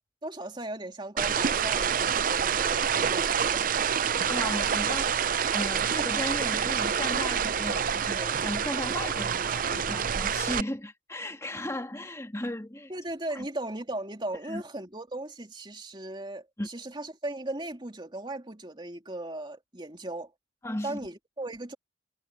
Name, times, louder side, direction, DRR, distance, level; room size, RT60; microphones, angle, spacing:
voice 1, 0.2-3.7 12.9-20.3 20.8-21.7, right 1 dB, 25° right, 3.0 m, -37 dB
sound 1, 1.2-10.6, right 7 dB, 50° right, 0.5 m, -27 dB
voice 2, 4.3-5.2 5.5-12.9 13.3-13.5 14.4-14.6 16.6-16.7 20.6-21.0, left 1 dB, 15° left, 2.3 m, -36 dB
head